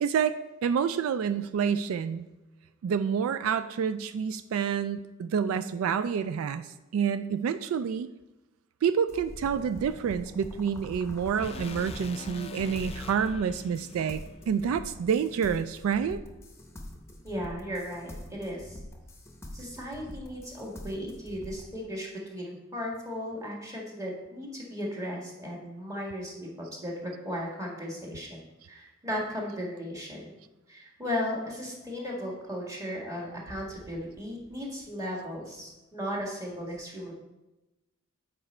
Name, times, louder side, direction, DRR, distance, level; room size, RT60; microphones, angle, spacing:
voice 1, 0.0-2.3 2.8-8.1 8.8-16.2, right 7 dB, 80° right, 11 dB, 0.3 m, -28 dB
sound 1, 9.1-21.7, left 1 dB, 15° left, 0.8 m, -45 dB
sound 2, 11.4-15.6, left 3 dB, 30° left, 0.4 m, -44 dB
voice 2, 17.2-18.8 19.5-28.4 28.6-30.3 30.7-37.1, equal, 15° right, -2 dB, 1.6 m, -36 dB
8.0 x 5.1 x 4.3 m, 1.0 s
head